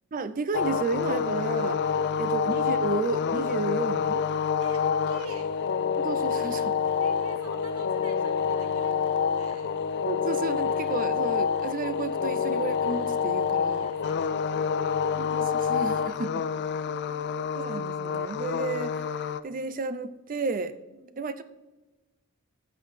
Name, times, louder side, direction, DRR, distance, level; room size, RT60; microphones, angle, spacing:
voice 1, 0.1-1.9 2.2-4.2 6.0-6.8 10.1-13.8 15.2-16.4 17.5-20.7 21.2-21.4, right 4 dB, 40° right, 13 dB, 0.5 m, -32 dB
sound 1, 0.5-19.4, left 6 dB, 50° left, 0.4 m, -27 dB
voice 2, 4.6-5.5 7.0-9.7 13.8-14.8 15.8-17.8 20.9-21.3, right 1 dB, 70° right, 5 dB, 1.3 m, -47 dB
14.5 x 6.1 x 3.3 m, 1.1 s
head